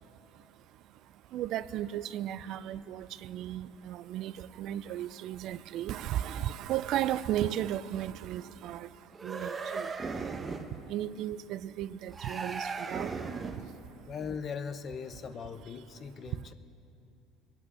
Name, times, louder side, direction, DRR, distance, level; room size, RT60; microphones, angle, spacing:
voice 1, 1.3-8.9 9.2-9.9 10.9-13.1, right 12 dB, 55° right, 16 dB, 0.4 m, -35 dB
sound 1, 9.1-10.8 12.1-13.7, right 4 dB, 25° right, 0.9 m, -37 dB
voice 2, 14.1-16.5, left 6 dB, 40° left, 10 dB, 0.8 m, -39 dB
21.0 x 8.7 x 6.2 m, 2.8 s
supercardioid pair, 110°, 0 cm